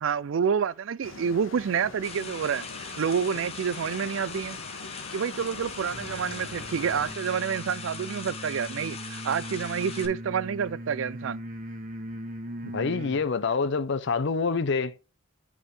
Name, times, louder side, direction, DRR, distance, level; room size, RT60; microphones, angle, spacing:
voice 1, 0.0-4.6 5.1-11.4, right 7 dB, 70° right, 0.4 m, -28 dB
sound 1, 1.0-7.2, left 3 dB, 90° left, 0.9 m, -43 dB
sound 2, 2.0-10.1, left 5 dB, 30° left, 1.0 m, -40 dB
sound 3, 5.9-13.3, equal, 40° right, 1.2 m, -40 dB
voice 2, 12.6-15.1, left 4 dB, 60° left, 0.6 m, -27 dB
10.0 x 3.6 x 3.2 m
head